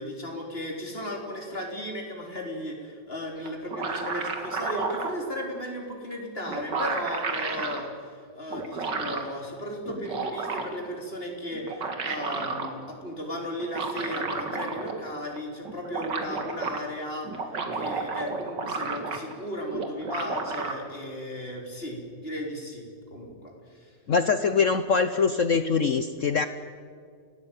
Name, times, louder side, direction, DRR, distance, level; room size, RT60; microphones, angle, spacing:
voice 1, 0.0-23.9, equal, 30° left, 1 dB, 4.2 m, -35 dB
sound 1, 3.5-5.2 6.1-6.2 6.5-7.8 8.5-9.3 9.9-10.9 11.5-12.7 13.6-15.1 15.4-15.5 15.7-16.8 17.2-19.4 19.7-20.7, right 4 dB, 75° right, 2.7 m, -32 dB
voice 2, 24.1-26.5, left 5 dB, 55° left, 10 dB, 1.0 m, -23 dB
28.5 x 17.5 x 9.0 m, 2.1 s
omnidirectional pair, 2.0 m